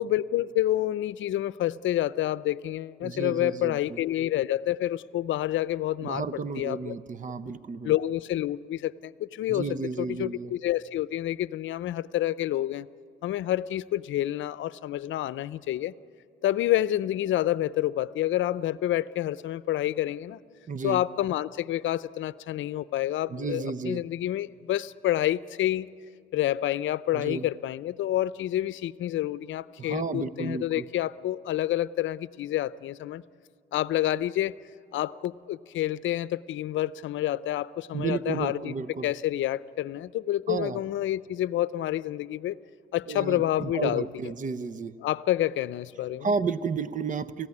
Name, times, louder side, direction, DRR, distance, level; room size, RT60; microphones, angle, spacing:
voice 1, 0.0-7.0 7.8-9.7 10.0-12.9 13.2-15.9 16.4-20.4 20.8-25.9 26.3-33.2 33.7-34.5 34.9-38.7 39.0-42.6 42.9-44.0 45.0-46.3, left 13 dB, 75° left, 17 dB, 0.6 m, -28 dB
voice 2, 3.0-4.0 6.0-7.9 9.5-10.5 20.7-21.0 23.3-24.0 27.1-27.4 29.8-30.8 37.9-39.1 40.5-40.8 43.1-44.9 46.2-47.5, right 4 dB, 40° right, 14 dB, 0.9 m, -32 dB
29.5 x 15.5 x 9.8 m, 2.2 s
cardioid pair, 90°, 20 cm